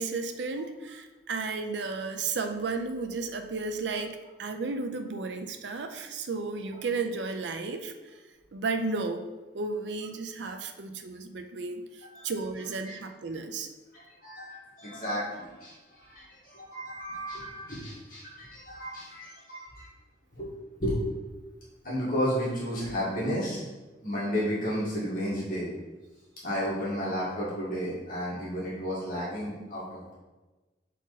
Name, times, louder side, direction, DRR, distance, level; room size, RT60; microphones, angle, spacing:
voice 1, 0.0-7.9 8.5-9.3 9.5-13.7, right 3 dB, 85° right, 6 dB, 0.6 m, -33 dB
voice 2, 12.0-12.3 12.8-12.9 13.9-19.9 20.3-20.5 20.8-21.1 21.8-23.6 24.0-25.7 26.4-30.2, equal, 50° left, -8 dB, 1.9 m, -33 dB
6.1 x 4.2 x 4.1 m, 1.2 s
head